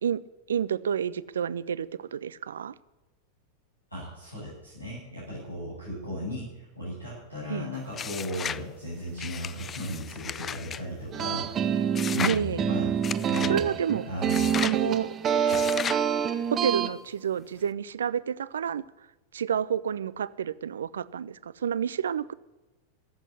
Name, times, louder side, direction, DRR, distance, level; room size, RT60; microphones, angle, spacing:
voice 1, 0.5-2.7 7.5-7.7 12.2-12.6 13.5-14.1 14.6-15.1 16.5-18.8 19.3-22.3, right 8 dB, 65° right, 18 dB, 0.5 m, -29 dB
voice 2, 3.9-11.5 12.1-12.9 13.2-13.7 14.0-14.6 15.4-15.6, equal, 90° left, -8 dB, 7.3 m, -36 dB
sound 1, 7.9-8.6 9.2-10.8 11.9-12.4 13.0-13.6 14.3-14.8 15.5-16.0, left 7 dB, 25° left, 0.4 m, -34 dB
sound 2, 11.1-16.9, right 8 dB, 25° right, 1.1 m, -27 dB
15.0 x 8.1 x 9.7 m, 1.1 s
figure-of-eight pair, 90°, 0 cm